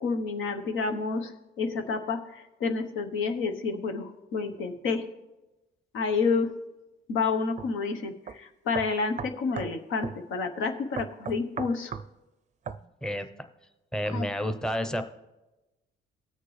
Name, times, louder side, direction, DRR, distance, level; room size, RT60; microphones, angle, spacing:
voice 1, 0.0-1.3 1.6-5.0 5.9-6.5 7.1-11.9 14.1-14.3, left 4 dB, 85° left, 6 dB, 1.0 m, -29 dB
sound 1, 7.6-7.7 8.3-8.4 8.7-9.7 10.0-10.2 11.0-12.1 12.7-12.8, right 7 dB, 35° right, 0.4 m, -36 dB
voice 2, 13.9-15.0, equal, 5° left, 8 dB, 0.7 m, -30 dB
19.0 x 6.7 x 3.2 m, 1.0 s
cardioid pair, 90°, 20 cm